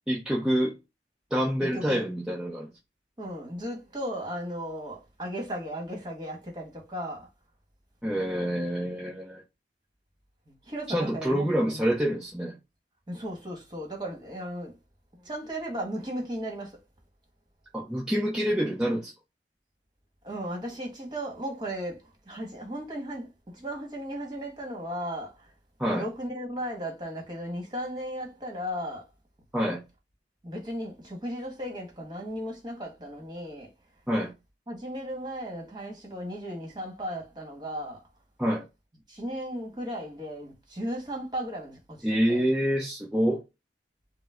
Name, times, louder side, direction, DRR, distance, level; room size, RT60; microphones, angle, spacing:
voice 1, 0.1-0.7 1.3-2.7 8.0-9.4 10.9-12.5 17.7-19.1 25.8-26.1 29.5-29.8 34.1-34.3 38.4-38.6 42.0-43.4, equal, 5° right, 0.9 m, -27 dB
voice 2, 1.6-2.1 3.2-7.3 10.5-11.8 13.1-14.7 15.2-16.7 20.2-25.3 25.9-29.0 30.4-33.7 34.7-38.0 39.1-42.4, equal, 25° right, 1.7 m, -36 dB
5.2 x 2.2 x 3.7 m
head